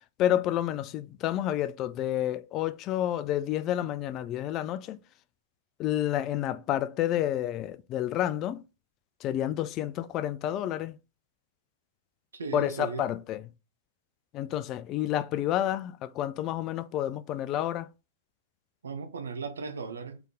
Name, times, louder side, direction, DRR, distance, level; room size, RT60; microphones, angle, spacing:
voice 1, 0.2-5.0 5.8-8.6 9.2-11.0 12.5-13.5 14.3-17.9, left 12 dB, 35° left, 0.3 m, -29 dB
voice 2, 12.3-13.1 18.8-20.2, right 4 dB, 75° right, 0.8 m, -36 dB
4.0 x 3.4 x 3.5 m
figure-of-eight pair, 105°, 0 cm